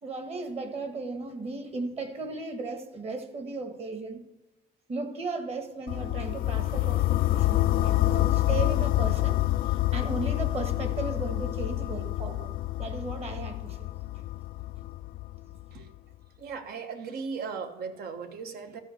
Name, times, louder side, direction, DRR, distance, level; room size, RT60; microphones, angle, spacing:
voice 1, 0.0-4.3 4.9-9.4 9.6-13.9, right 3 dB, 35° right, 7 dB, 1.6 m, -36 dB
sound 1, 5.9-15.8, left 16 dB, 60° left, 0.4 m, -27 dB
voice 2, 16.4-18.8, right 5 dB, 65° right, 7 dB, 1.3 m, -37 dB
13.0 x 5.2 x 6.5 m, 1.1 s
cardioid pair, 110°, 17 cm